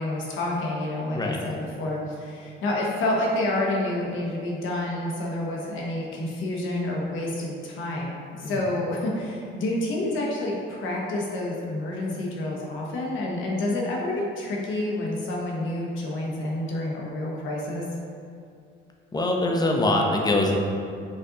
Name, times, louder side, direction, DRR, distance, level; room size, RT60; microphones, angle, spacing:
voice 1, 0.0-17.8, left 1 dB, 80° left, -2 dB, 0.9 m, -29 dB
voice 2, 19.1-20.5, left 2 dB, 20° left, 0 dB, 0.6 m, -23 dB
5.3 x 2.5 x 3.8 m, 2.4 s
cardioid pair, 90°, 20 cm